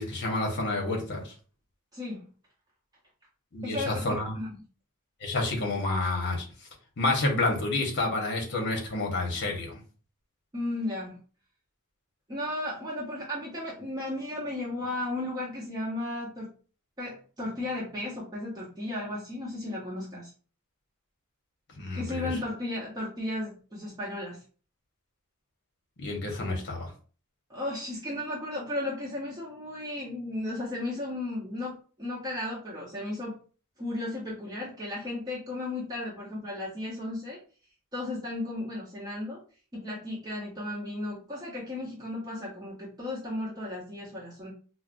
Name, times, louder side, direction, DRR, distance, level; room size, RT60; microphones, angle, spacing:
voice 1, 0.0-1.3 3.5-4.4 5.2-6.7 7.0-9.8 21.8-22.4 26.0-26.9, left 2 dB, 55° left, 1 dB, 1.0 m, -29 dB
voice 2, 1.9-2.3 3.6-4.6 10.5-11.2 12.3-16.5 17.0-20.3 21.9-24.4 27.5-33.4 33.8-37.4 37.9-39.4 39.7-44.5, left 1 dB, 20° right, -5 dB, 0.7 m, -35 dB
4.3 x 2.0 x 2.5 m, 0.39 s
head